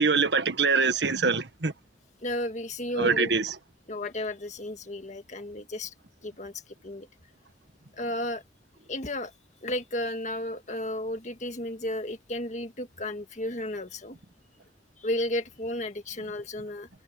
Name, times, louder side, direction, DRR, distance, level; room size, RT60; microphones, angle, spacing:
voice 1, 0.0-1.7 3.0-3.5, right 4 dB, 75° right, 1.6 m, -24 dB
voice 2, 2.2-3.3 3.9-5.9 6.2-6.5 6.8-7.1 7.9-8.4 8.9-9.3 9.6-14.2 15.0-16.9, left 1 dB, 40° left, 1.8 m, -33 dB
head